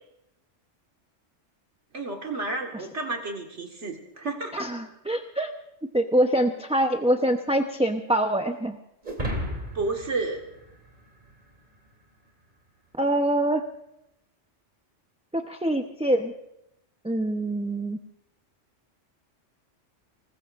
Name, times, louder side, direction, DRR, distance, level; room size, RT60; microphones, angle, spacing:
voice 1, 1.9-4.7 9.7-10.5, right 3 dB, 70° right, 1 dB, 2.0 m, -31 dB
voice 2, 4.5-5.5 5.9-8.8 13.0-13.6 15.3-16.3 17.0-18.0, right 1 dB, 5° right, 4 dB, 0.6 m, -24 dB
sound 1, 9.0-11.6, equal, 40° right, 3.2 m, -34 dB
25.0 x 20.5 x 2.5 m, 0.83 s
omnidirectional pair, 1.3 m